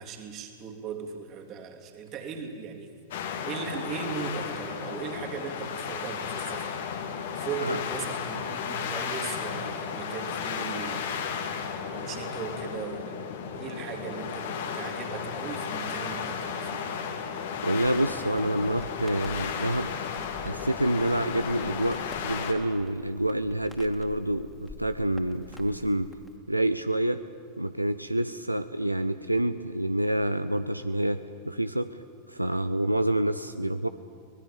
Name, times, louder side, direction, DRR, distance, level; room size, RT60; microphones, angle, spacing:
voice 1, 0.0-2.9 3.4-6.8 7.4-11.1 11.9-13.2 13.6-16.8, right 6 dB, 35° right, 4 dB, 3.2 m, -38 dB
sound 1, 3.1-22.5, left 6 dB, 60° left, 2.4 m, -34 dB
voice 2, 17.6-19.9 20.4-26.1 26.5-27.2 27.6-32.0 32.3-33.9, right 1 dB, 85° right, 11 dB, 0.6 m, -27 dB
Crackle, 17.7-26.4, left 1 dB, 5° left, 2.8 m, -50 dB
24.5 x 20.0 x 8.6 m, 2.3 s
figure-of-eight pair, 90°, 0 cm